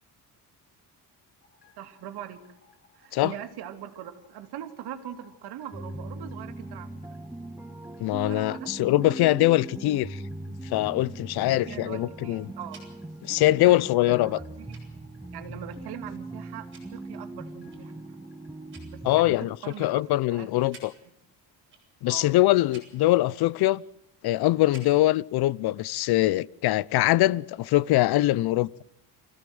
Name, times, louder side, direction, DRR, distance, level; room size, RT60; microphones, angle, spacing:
sound 1, 1.4-18.7, left 4 dB, 30° left, 4.5 m, -63 dB
voice 1, 1.8-2.4 3.0-6.9 8.3-8.7 11.5-12.8 13.6-13.8 14.2-14.8 15.3-17.9 18.9-20.0 20.3-20.7 22.1-22.3, right 10 dB, 85° right, 2.7 m, -41 dB
sound 2, 5.7-19.4, right 2 dB, 5° right, 0.7 m, -40 dB
voice 2, 8.0-10.2 10.6-12.5 13.2-14.4 19.0-20.9 22.0-23.8 24.2-28.7, left 16 dB, 75° left, 0.7 m, -23 dB
Tick-tock, 11.3-25.3, right 4 dB, 30° right, 7.2 m, -58 dB
25.5 x 16.0 x 7.8 m
cardioid pair, 180°, 38 cm